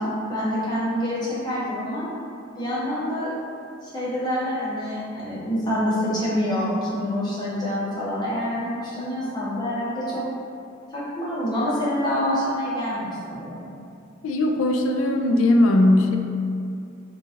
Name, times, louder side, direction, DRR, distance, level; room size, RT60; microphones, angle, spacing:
voice 1, 0.0-2.1 2.5-3.3 3.8-10.2 10.9-13.6, equal, 20° left, -9 dB, 0.9 m, -26 dB
voice 2, 14.2-16.2, left 1 dB, 70° left, 3 dB, 0.3 m, -19 dB
3.8 x 2.8 x 2.5 m, 2.5 s
head